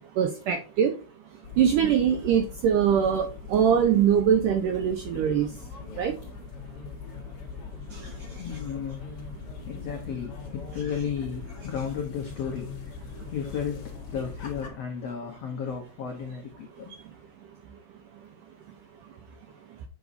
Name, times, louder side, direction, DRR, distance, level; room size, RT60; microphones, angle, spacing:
voice 1, 0.2-0.9 1.6-5.5 6.0-6.1, right 8 dB, 85° right, 1.9 m, -22 dB
sound 1, 1.4-14.7, left 5 dB, 50° left, 1.9 m, -41 dB
voice 2, 8.4-9.1 9.6-16.9, left 7 dB, 90° left, 1.4 m, -34 dB
8.7 x 6.1 x 2.6 m
omnidirectional pair, 4.7 m